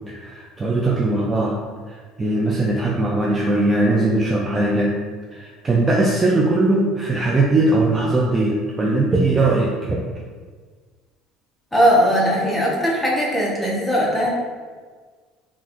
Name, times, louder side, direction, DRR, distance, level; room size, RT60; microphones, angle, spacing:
voice 1, 0.1-1.6 1.9-5.0 5.3-10.0, right 2 dB, 20° right, -2 dB, 0.4 m, -20 dB
voice 2, 11.7-14.3, equal, 5° left, -5 dB, 0.9 m, -19 dB
3.8 x 2.4 x 3.0 m, 1.5 s
supercardioid pair, 105°, 0 cm